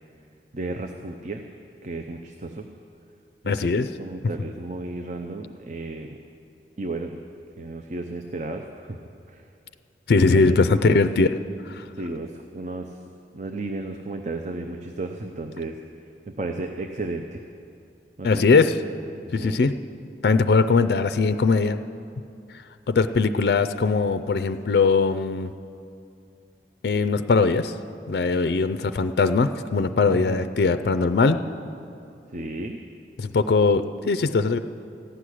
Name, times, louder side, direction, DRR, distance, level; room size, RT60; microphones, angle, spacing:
voice 1, 0.5-1.4 1.8-2.7 3.4-6.2 6.8-7.2 7.6-9.0 9.3-9.5 10.3-11.0 12.0-13.0 13.3-15.8 16.3-17.4 18.2-18.7 19.2-19.6 30.1-30.4 32.3-32.8, right 2 dB, 40° right, 5 dB, 0.6 m, -33 dB
voice 2, 3.4-3.9 10.1-11.3 11.7-11.8 18.2-18.7 19.3-19.7 20.2-21.8 22.9-25.5 26.8-27.7 28.1-31.4 33.2-34.6, left 4 dB, 65° left, 12 dB, 0.4 m, -20 dB
15.0 x 6.2 x 9.9 m, 2.6 s
head